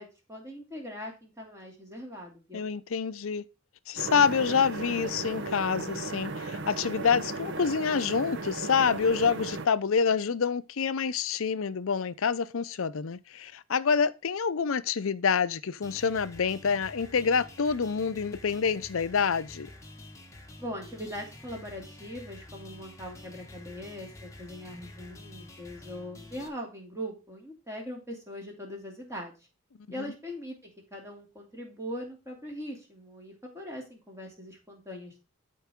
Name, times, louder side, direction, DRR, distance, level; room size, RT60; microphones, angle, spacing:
voice 1, 0.0-2.6 20.6-29.4 29.9-35.2, equal, 15° right, 2.8 m, -41 dB
voice 2, 2.5-3.4 3.9-19.7 30.0-30.1, left 6 dB, 70° left, 0.5 m, -27 dB
sound 1, 4.0-9.7, right 3 dB, 55° right, 0.8 m, -36 dB
sound 2, 15.8-26.5, left 1 dB, 15° left, 1.3 m, -48 dB
12.5 x 4.7 x 3.6 m
head